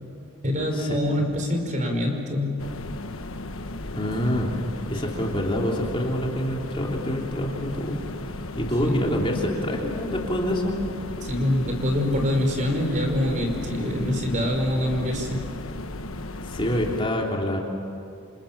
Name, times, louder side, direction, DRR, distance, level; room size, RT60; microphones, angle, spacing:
voice 1, 0.4-2.7 4.9-5.1 8.8-9.0 11.2-15.5, left 1 dB, 35° right, 3 dB, 5.1 m, -25 dB
sound 1, 2.6-17.0, left 2 dB, 70° left, 1.3 m, -35 dB
voice 2, 3.9-8.0 8.5-10.8 16.4-17.6, left 1 dB, 25° left, -1 dB, 3.4 m, -26 dB
29.0 x 27.5 x 7.4 m, 2.5 s
head